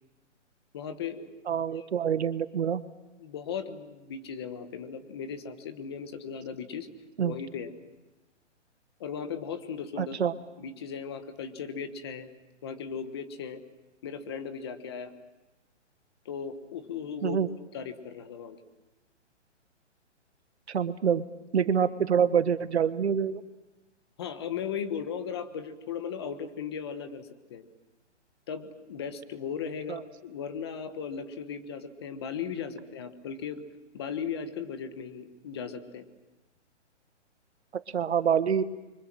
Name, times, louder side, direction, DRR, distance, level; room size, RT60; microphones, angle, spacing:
voice 1, 0.7-1.9 3.2-6.9 7.2-7.7 9.0-10.1 10.6-12.3 12.6-13.6 14.0-15.1 16.2-17.4 17.7-18.6 24.2-27.7 28.5-33.7 33.9-36.1, left 7 dB, 20° left, 10 dB, 1.2 m, -37 dB
voice 2, 1.5-2.8 7.2-7.4 10.0-10.3 17.2-17.5 20.7-21.2 21.5-23.4 29.9-30.0 37.7-38.6, right 7 dB, 60° right, 12 dB, 1.6 m, -26 dB
29.5 x 25.0 x 7.6 m, 1.0 s
hypercardioid pair, 175°, 36 cm